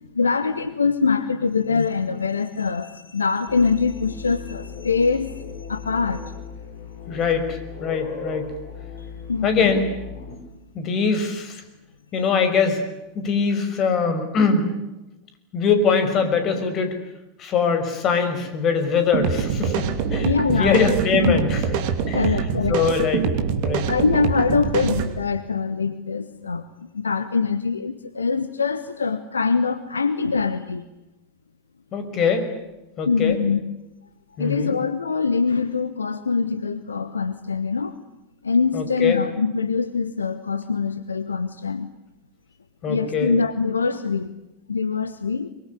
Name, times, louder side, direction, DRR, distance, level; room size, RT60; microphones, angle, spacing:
voice 1, 0.1-5.4 5.7-6.3 9.0-9.7 20.2-20.9 21.2-21.4 22.1-22.8 23.9-30.8 33.1-33.6 34.4-38.0 38.4-41.9 42.8-44.3 44.7-45.5, left 5 dB, 80° left, 13 dB, 1.2 m, -23 dB
sound 1, 3.5-10.4, left 6 dB, 60° left, 5.5 m, -37 dB
voice 2, 7.1-8.5 9.4-9.8 10.7-11.6 12.1-12.8 13.1-14.7 15.5-17.0 17.4-21.6 22.1-22.3 22.7-23.3 23.6-23.9 31.9-32.5 33.0-33.4 34.4-34.7 38.7-39.2 42.8-43.3, left 5 dB, 35° left, 8 dB, 5.6 m, -22 dB
sound 2, 19.1-25.1, right 7 dB, 50° right, 2.8 m, -24 dB
24.0 x 23.0 x 9.8 m, 0.96 s
figure-of-eight pair, 85°, 0 cm